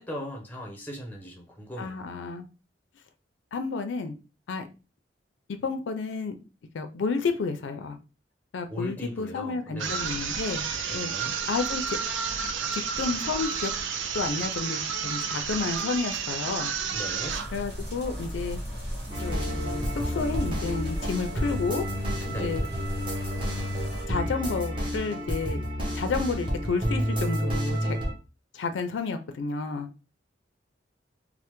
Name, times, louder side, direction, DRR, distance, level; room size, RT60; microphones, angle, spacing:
voice 1, 0.0-2.3 8.7-10.2 10.9-11.4 16.9-17.4 22.3-22.6, equal, 10° left, 0.6 m, -39 dB
voice 2, 1.8-2.5 3.5-4.1 4.5-4.7 5.5-6.4 6.7-8.0 8.5-10.6 10.9-11.1 11.5-12.0 12.7-13.7 14.1-16.7 17.5-18.6 19.2-21.8 22.4-22.6 24.1-25.6 25.9-28.0 28.5-29.9, left 4 dB, 85° left, 0.4 m, -31 dB
sound 1, 9.8-17.6, right 6 dB, 90° right, 0.4 m, -31 dB
sound 2, 17.3-24.1, equal, 60° right, 1.5 m, -37 dB
sound 3, 19.1-28.1, equal, 30° right, 0.8 m, -30 dB
3.2 x 2.0 x 3.0 m
head